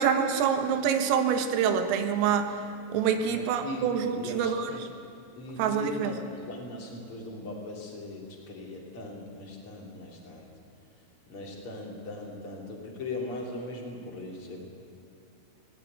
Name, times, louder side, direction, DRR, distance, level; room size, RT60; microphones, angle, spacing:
voice 1, 0.0-2.5 2.9-4.7 5.6-6.1, right 7 dB, 80° right, 7 dB, 4.0 m, -26 dB
voice 2, 3.3-4.9 5.3-10.5 11.3-14.6, left 2 dB, 30° left, -1 dB, 3.3 m, -39 dB
19.0 x 18.0 x 9.4 m, 2.7 s
omnidirectional pair, 5.9 m